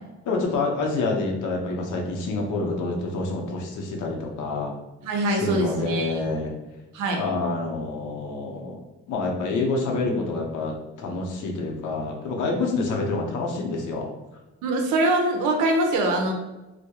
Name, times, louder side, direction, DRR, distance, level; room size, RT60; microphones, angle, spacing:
voice 1, 0.2-4.7 5.3-6.5 7.1-8.8 9.1-14.1, left 3 dB, 80° left, 1 dB, 0.6 m, -27 dB
voice 2, 5.0-6.2 6.9-7.2 14.6-16.3, right 2 dB, 85° right, 2 dB, 0.6 m, -23 dB
2.2 x 2.1 x 2.8 m, 1.1 s
cardioid pair, 90°, 30 cm